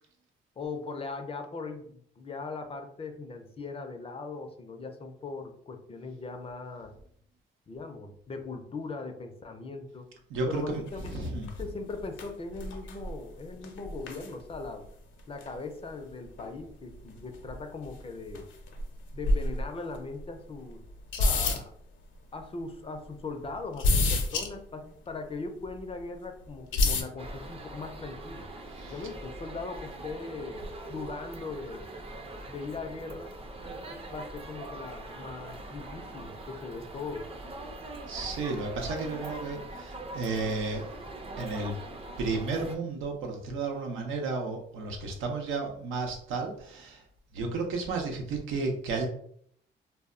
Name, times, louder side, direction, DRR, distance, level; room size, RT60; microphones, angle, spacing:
voice 1, 0.6-6.9 7.7-10.1 10.5-11.1 11.6-14.9 15.3-18.5 19.1-20.8 21.2-21.7 22.3-28.5 28.9-30.6 30.9-31.9 32.5-33.3 34.1-37.3, left 3 dB, 30° left, 6 dB, 0.4 m, -39 dB
voice 2, 10.3-10.8 11.1-11.5 28.8-28.9 38.1-40.8 41.4-41.7 42.2-47.0 47.3-49.1, right 3 dB, 85° right, 2 dB, 0.6 m, -32 dB
sound 1, 10.9-11.2 11.5-11.6 11.9-12.0 12.2-12.3 12.5-13.2 13.6-14.3 14.6-14.7 15.4-15.5 16.4-16.5 17.3-18.0 18.3-18.8 19.1-19.7 20.2-20.3 20.9-21.6 23.8-24.5 25.7-25.8 26.7-27.0, left 2 dB, 75° left, 0.6 m, -27 dB
sound 2, 27.2-42.8, right 2 dB, 30° right, 0.5 m, -42 dB
2.2 x 2.0 x 3.6 m, 0.64 s
cardioid pair, 90°, 20 cm